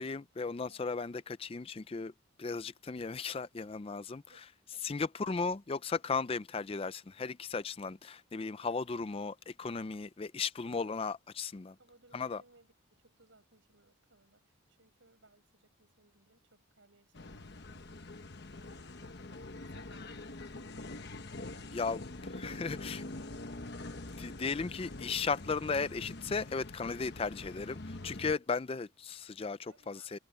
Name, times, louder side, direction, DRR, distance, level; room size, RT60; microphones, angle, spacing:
voice 1, 0.0-2.1 2.4-4.2 4.8-11.8 12.1-12.4 21.7-23.0 24.2-30.2, left 4 dB, 25° left, 0.4 m, -36 dB
voice 2, 4.3-5.3 10.7-11.1 11.8-20.9 29.7-30.2, right 2 dB, 65° right, 7.2 m, -66 dB
sound 1, 17.1-28.4, left 2 dB, 50° left, 1.1 m, -45 dB
head